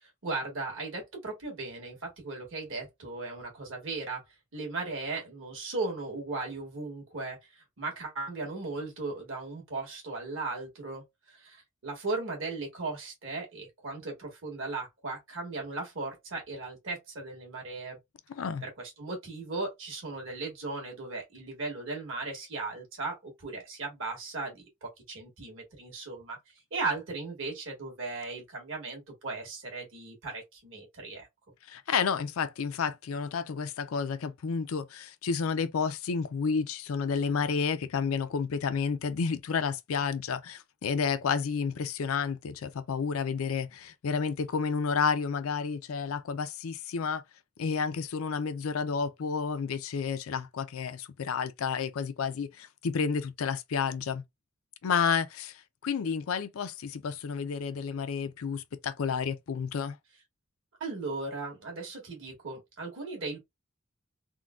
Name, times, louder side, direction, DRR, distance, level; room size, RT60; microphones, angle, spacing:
voice 1, 0.0-4.2 4.5-18.0 18.6-26.4 26.7-31.3 60.8-63.4, right 3 dB, 65° right, 1.6 m, -37 dB
voice 2, 18.3-18.6 31.7-47.2 47.6-54.2 54.8-60.0, left 6 dB, 80° left, 0.4 m, -31 dB
3.6 x 2.2 x 2.3 m
head